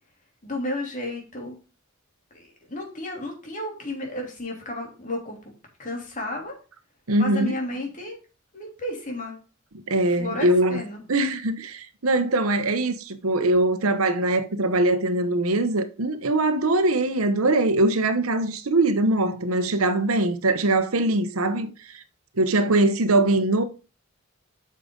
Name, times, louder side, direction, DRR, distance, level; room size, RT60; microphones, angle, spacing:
voice 1, 0.4-1.6 2.3-5.4 5.8-6.6 7.2-8.2 8.5-9.3 10.0-11.0, left 1 dB, 40° left, 3.2 m, -32 dB
voice 2, 7.1-7.5 9.9-10.8 11.1-22.0 22.4-23.6, right 2 dB, 80° right, 1.0 m, -22 dB
8.8 x 6.7 x 3.8 m
head